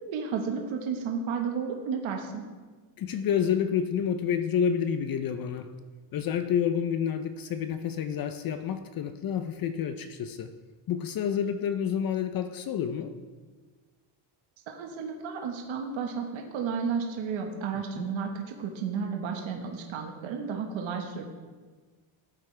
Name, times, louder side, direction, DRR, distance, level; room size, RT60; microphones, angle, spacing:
voice 1, 0.1-2.4 14.7-21.2, right 6 dB, 70° right, 2 dB, 1.4 m, -32 dB
voice 2, 3.0-5.7 6.1-10.5 10.9-13.2 17.7-18.1, left 8 dB, 45° left, 9 dB, 0.6 m, -29 dB
14.0 x 8.2 x 3.3 m, 1.4 s
cardioid pair, 135°, 49 cm